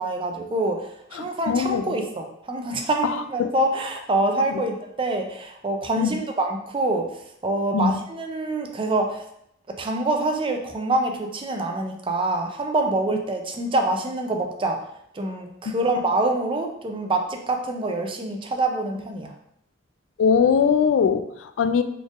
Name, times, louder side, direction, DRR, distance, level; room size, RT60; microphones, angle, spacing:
voice 1, 0.0-7.1 7.4-9.2 9.8-14.8 15.1-19.3, right 2 dB, 25° right, 3 dB, 0.5 m, -25 dB
voice 2, 1.1-1.8 3.0-3.5 6.0-6.2 7.7-8.0 20.2-21.8, left 6 dB, 90° left, 10 dB, 0.3 m, -21 dB
4.1 x 3.3 x 2.4 m, 0.74 s
head